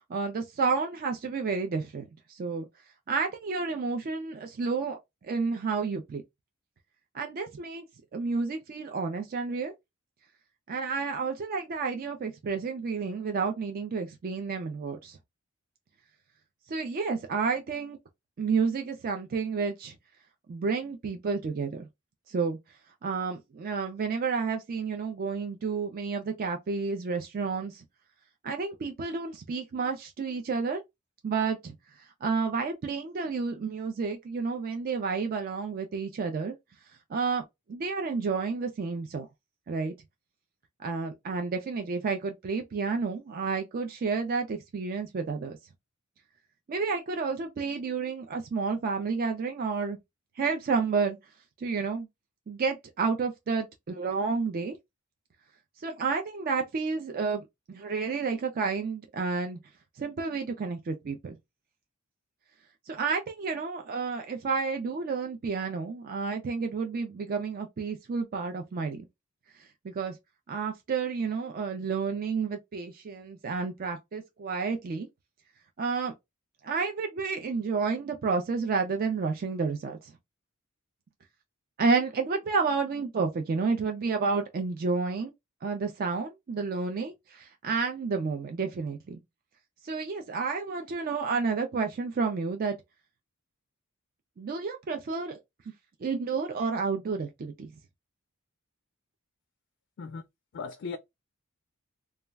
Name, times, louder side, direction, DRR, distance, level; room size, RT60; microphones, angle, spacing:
voice 1, 0.1-2.7 3.1-6.2 7.1-7.8 8.1-9.7 10.7-15.2 16.7-18.0 18.4-19.9 20.5-21.9 22.3-22.6 23.0-27.8 28.4-30.8 31.2-36.6 37.1-39.3 39.7-39.9 40.8-45.6 46.7-50.0 50.4-51.2 51.6-52.1 52.5-54.8 55.8-59.6 60.0-61.4 62.9-69.0 69.5-70.2 70.5-75.1 75.8-76.1 76.6-80.1 81.8-85.3 85.6-89.2 89.8-92.8 94.4-95.4 96.0-97.7, right 4 dB, 45° right, 0.4 m, -30 dB
voice 2, 100.5-101.0, left 4 dB, 55° left, 0.4 m, -37 dB
2.3 x 2.1 x 3.3 m
head